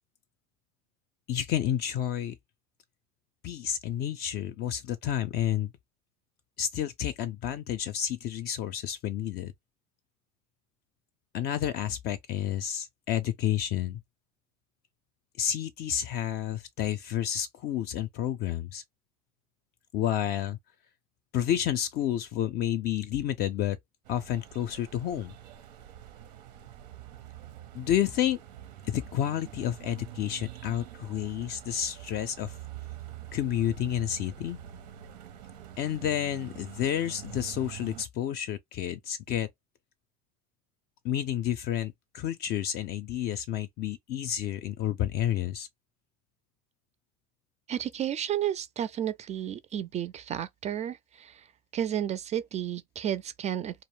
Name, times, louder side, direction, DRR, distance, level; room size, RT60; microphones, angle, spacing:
voice 1, 1.3-2.4 3.4-5.7 6.6-9.5 11.3-14.0 15.4-18.8 19.9-20.6 21.3-23.8 24.1-25.3 27.7-28.4 28.9-32.5 33.3-34.6 35.8-39.5 41.0-45.7, left 10 dB, 50° left, 0.4 m, -30 dB
sound 1, 24.0-38.1, right 12 dB, 85° right, 0.7 m, -46 dB
voice 2, 47.7-51.4 51.7-53.8, right 10 dB, 35° right, 0.3 m, -32 dB
2.2 x 2.0 x 3.1 m
supercardioid pair, 95°, 20 cm